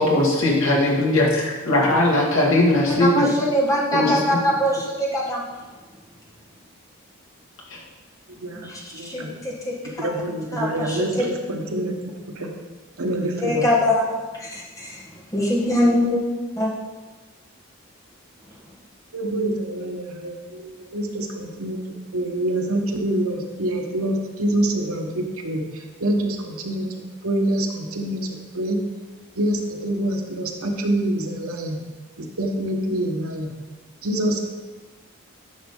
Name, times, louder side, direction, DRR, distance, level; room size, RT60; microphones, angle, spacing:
voice 1, 0.0-3.3 3.9-4.4 7.7-7.8, left 1 dB, 70° left, -3 dB, 2.1 m, -19 dB
voice 2, 2.9-5.4 8.6-10.1 10.5-11.2 13.4-14.0 14.4-15.0 15.3-16.2 16.6-16.7, left 1 dB, 15° left, -4 dB, 1.5 m, -23 dB
voice 3, 8.3-8.7 8.9-9.3 9.8-12.5 13.0-13.7 19.1-21.8 22.1-26.9 27.2-28.8 29.3-31.8 32.2-33.5 34.0-34.4, right 1 dB, 80° right, 2 dB, 1.2 m, -26 dB
10.5 x 6.2 x 3.8 m, 1.2 s
head